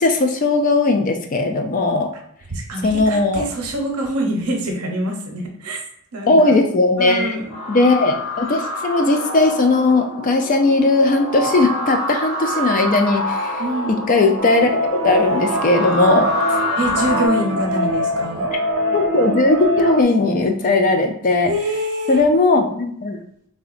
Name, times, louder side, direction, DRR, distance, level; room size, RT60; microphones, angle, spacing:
voice 1, 0.0-2.1 2.8-3.5 6.3-7.4 7.7-13.6 14.1-16.3 18.9-21.5 22.1-23.2, left 2 dB, 35° left, 5 dB, 0.3 m, -17 dB
voice 2, 2.5-5.8 6.1-6.6 7.0-7.5 13.6-14.0 16.8-18.5 21.4-22.2, right 1 dB, 85° right, 1 dB, 0.7 m, -25 dB
sound 1, 7.5-17.3, left 1 dB, 75° left, 1.0 m, -26 dB
sound 2, 14.4-20.0, equal, 60° right, 0.4 m, -23 dB
3.7 x 2.1 x 2.4 m, 0.68 s
head